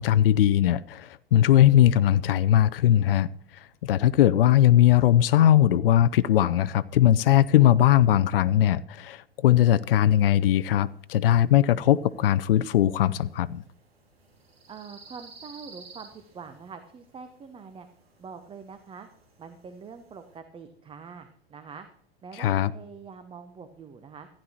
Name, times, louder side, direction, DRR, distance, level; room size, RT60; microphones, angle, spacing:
voice 1, 0.0-13.6 22.4-22.7, left 12 dB, 70° left, 0.5 m, -20 dB
sound 1, 9.5-20.4, right 3 dB, 75° right, 2.2 m, -55 dB
voice 2, 14.7-17.9 18.2-19.1 19.4-21.9 22.2-24.3, right 5 dB, 15° right, 0.8 m, -44 dB
15.5 x 10.0 x 2.9 m
figure-of-eight pair, 90°, 30 cm